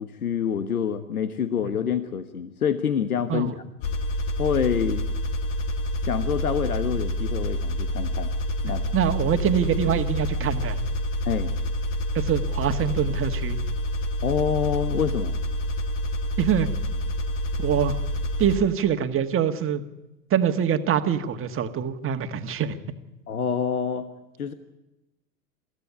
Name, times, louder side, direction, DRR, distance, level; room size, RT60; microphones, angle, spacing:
voice 1, 0.0-3.5 4.4-5.0 6.0-8.3 8.6-8.8 11.2-11.5 14.2-15.3 23.3-24.1 24.4-24.5, left 7 dB, 85° left, 10 dB, 1.4 m, -26 dB
sound 1, 3.8-18.6, left 1 dB, 50° left, 2.3 m, -28 dB
voice 2, 8.9-10.8 12.1-13.6 16.4-16.7 17.6-18.0 18.4-19.8 20.3-22.8, right 8 dB, 30° right, 7 dB, 1.8 m, -24 dB
23.5 x 15.5 x 9.8 m, 0.98 s
hypercardioid pair, 90°, 43 cm